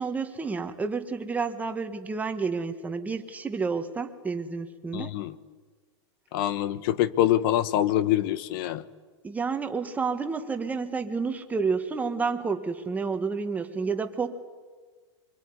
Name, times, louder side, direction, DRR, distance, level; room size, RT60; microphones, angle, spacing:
voice 1, 0.0-5.1 9.2-14.3, right 4 dB, 10° right, 7 dB, 1.6 m, -30 dB
voice 2, 4.9-5.3 6.3-8.8, left 13 dB, 50° left, 16 dB, 1.3 m, -25 dB
24.5 x 24.0 x 9.7 m, 1.4 s
supercardioid pair, 150°, 15 cm